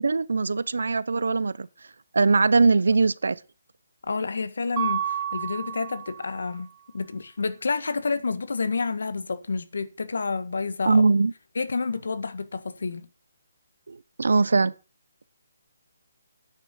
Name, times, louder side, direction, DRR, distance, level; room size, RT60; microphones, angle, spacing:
voice 1, 0.0-1.7 2.1-3.4 10.9-11.3 13.9-14.7, right 4 dB, 80° right, 0.8 m, -21 dB
voice 2, 4.0-6.7 6.9-11.0 11.5-13.1, left 4 dB, 75° left, 1.6 m, -29 dB
Mallet percussion, 4.8-6.6, right 10 dB, 20° right, 0.7 m, -31 dB
9.3 x 6.8 x 8.2 m
hypercardioid pair, 165°, 0 cm